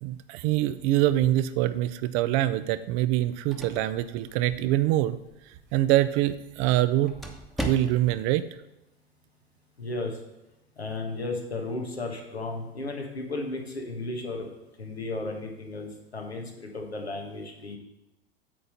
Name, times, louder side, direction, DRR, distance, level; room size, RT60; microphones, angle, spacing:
voice 1, 0.0-5.2 5.7-7.1 7.6-8.4, right 14 dB, 45° right, 13 dB, 0.5 m, -24 dB
sound 1, 3.1-8.3, equal, ahead, 1.0 m, -41 dB
voice 2, 9.8-10.2 10.8-14.5 14.8-17.8, left 2 dB, 90° left, 1 dB, 1.6 m, -34 dB
8.5 x 3.8 x 6.9 m, 0.94 s
figure-of-eight pair, 90°, 31 cm